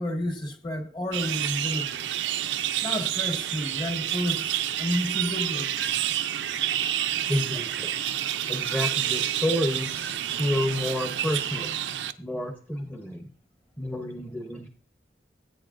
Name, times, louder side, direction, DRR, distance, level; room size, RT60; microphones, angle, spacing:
voice 1, 0.0-2.1 2.8-5.9, left 1 dB, 25° left, 1.0 m, -31 dB
sound 1, 1.1-12.1, right 11 dB, 85° right, 0.5 m, -29 dB
voice 2, 7.3-7.9 8.5-11.7 12.2-13.3 13.8-14.7, left 1 dB, 10° left, 0.7 m, -29 dB
15.5 x 8.2 x 2.5 m
head